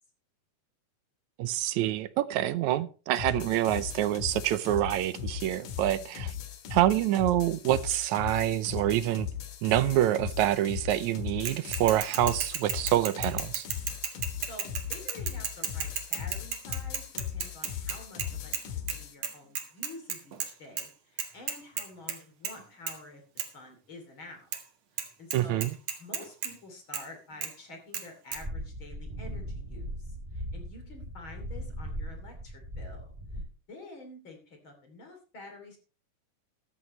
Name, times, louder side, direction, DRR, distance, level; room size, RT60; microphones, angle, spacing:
voice 1, 1.4-6.3 6.7-9.3 9.6-13.7 25.3-25.8, right 13 dB, 75° right, 1.9 m, -26 dB
sound 1, 3.2-19.2, left 10 dB, 80° left, 3.0 m, -38 dB
voice 2, 6.0-6.3 14.4-24.5 24.9-25.7 26.0-33.1 33.7-35.8, left 2 dB, 40° left, 3.4 m, -49 dB
Bicycle / Mechanisms, 11.5-18.6 18.9-19.0 19.2-20.5 20.8-20.9 21.2-22.2 22.4-22.6 22.9-23.0 23.4-23.5 24.5-24.6 25.0-25.1 25.3-26.5 26.9-27.0 27.4-27.5 27.9-28.0 28.3-28.4, right 8 dB, 60° right, 2.6 m, -33 dB
sound 2, 28.3-33.4, equal, 10° right, 2.7 m, -39 dB
14.0 x 12.5 x 3.1 m
omnidirectional pair, 3.7 m